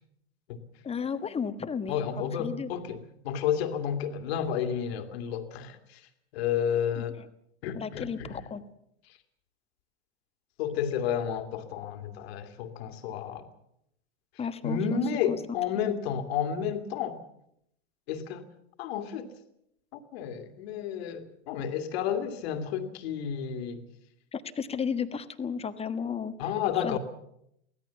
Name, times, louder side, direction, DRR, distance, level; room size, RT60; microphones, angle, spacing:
voice 1, 0.8-2.7 7.0-7.3 7.7-8.6 14.4-15.4 24.3-26.3 26.7-27.0, left 6 dB, 15° left, 1.4 m, -34 dB
voice 2, 1.9-3.0 3.2-6.0 6.3-7.2 7.6-8.4 10.6-13.5 14.6-17.2 18.1-18.4 18.8-19.3 19.9-23.8 26.4-27.0, left 8 dB, 60° left, 2.5 m, -31 dB
23.5 x 16.5 x 7.2 m
hypercardioid pair, 95°, 36 cm